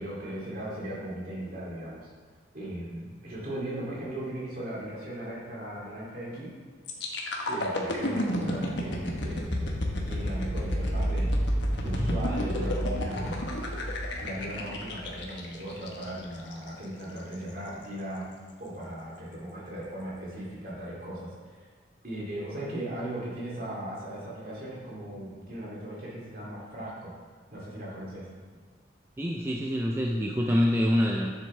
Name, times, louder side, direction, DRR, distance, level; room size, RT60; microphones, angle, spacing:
voice 1, 0.0-2.1 2.5-6.5 7.5-13.6 14.2-18.3 18.6-21.7 22.0-27.1 27.5-28.3, right 1 dB, 50° right, -6 dB, 2.7 m, -38 dB
sound 1, 6.9-16.7 17.2-17.3, equal, 75° left, 1.2 m, -30 dB
voice 2, 29.2-31.3, equal, 15° right, 0 dB, 0.4 m, -26 dB
10.5 x 7.4 x 3.3 m, 1.5 s
head